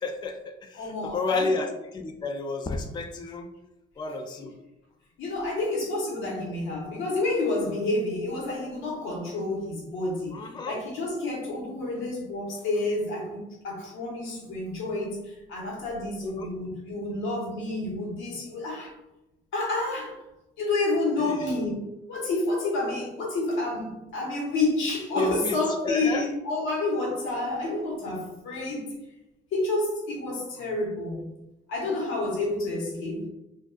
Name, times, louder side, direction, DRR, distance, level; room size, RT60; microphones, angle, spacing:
voice 1, 0.0-3.5 4.0-4.5 10.3-10.8 16.2-16.5 21.2-21.5 25.1-25.6 25.8-26.2 30.6-30.7, left 3 dB, 20° left, 5 dB, 0.3 m, -31 dB
voice 2, 0.7-1.5 5.2-18.9 19.5-20.2 20.6-21.8 22.1-28.9 29.5-31.3 31.7-33.3, left 2 dB, 85° left, -2 dB, 1.1 m, -29 dB
3.7 x 2.5 x 2.4 m, 0.93 s
cardioid pair, 90°, 20 cm